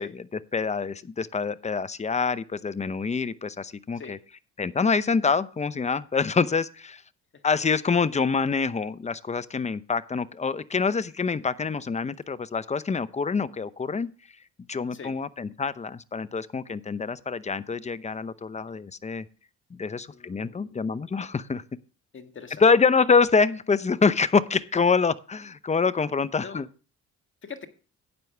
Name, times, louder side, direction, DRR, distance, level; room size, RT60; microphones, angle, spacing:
voice 1, 0.0-4.2 4.6-7.0 7.4-14.1 14.7-19.3 19.7-21.6 22.6-26.7, left 5 dB, 25° left, 15 dB, 0.7 m, -26 dB
voice 2, 20.1-20.8 22.1-22.6 26.4-26.6 27.4-27.7, left 6 dB, 40° left, 6 dB, 1.7 m, -43 dB
12.0 x 9.3 x 3.3 m, 0.36 s
cardioid pair, 90°, 30 cm